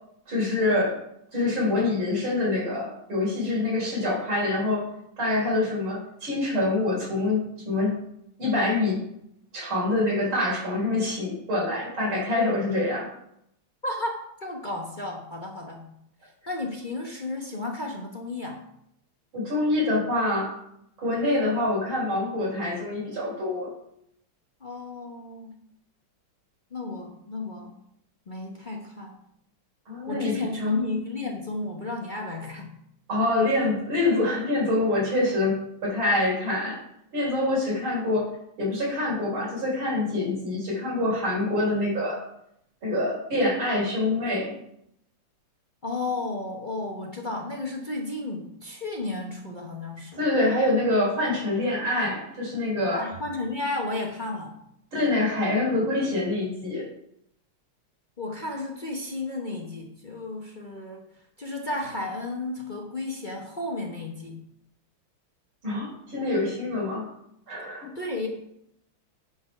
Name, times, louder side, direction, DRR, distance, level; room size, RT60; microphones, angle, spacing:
voice 1, 0.3-0.9 1.3-4.8 5.2-8.0 8.4-9.0 9.5-13.1 19.3-20.5 21.0-23.7 29.9-30.8 33.1-36.8 37.1-38.3 38.6-42.2 42.8-44.5 50.2-53.0 54.9-56.8 65.6-67.0 67.5-67.9, left 2 dB, 65° right, -5 dB, 4.7 m, -25 dB
voice 2, 13.8-15.9 16.5-18.6 24.6-25.5 26.7-27.7 28.3-29.1 30.1-32.7 45.8-50.2 52.9-54.5 58.2-61.0 61.4-64.4 67.9-68.3, left 2 dB, 45° left, 0 dB, 0.6 m, -33 dB
10.0 x 4.5 x 5.9 m, 0.77 s
omnidirectional pair, 2.4 m